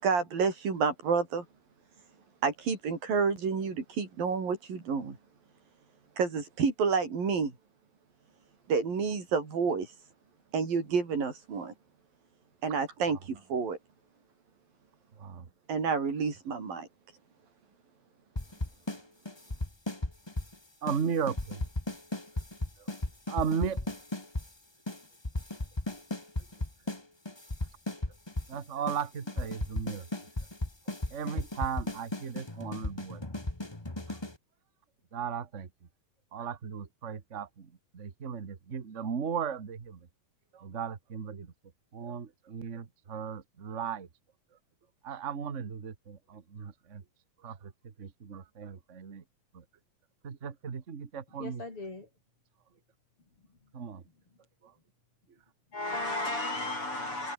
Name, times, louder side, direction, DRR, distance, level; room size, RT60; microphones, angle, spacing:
voice 1, 0.0-1.4 2.4-5.2 6.2-7.5 8.7-9.9 10.5-11.7 12.6-13.8 15.7-16.9, right 5 dB, 85° right, 7.0 m, -29 dB
sound 1, 18.3-19.0 19.2-20.5 20.9-21.0 21.3-24.5 24.9-25.0 25.2-27.0 27.2-28.5 28.9-29.0 29.3-34.3, left 2 dB, 10° left, 1.5 m, -35 dB
voice 2, 20.8-21.6 23.3-23.8 28.5-30.0 31.1-33.2 34.1-34.2 35.1-35.7 36.3-37.7 37.9-40.0 40.5-41.5 41.9-44.1 45.0-47.0 47.4-47.7 48.0-49.2 49.5-49.6 50.2-51.6 53.7-54.0, right 7 dB, 55° right, 0.7 m, -36 dB
voice 3, 51.4-52.1 55.7-57.3, left 2 dB, 40° left, 6.4 m, -34 dB
omnidirectional pair, 3.9 m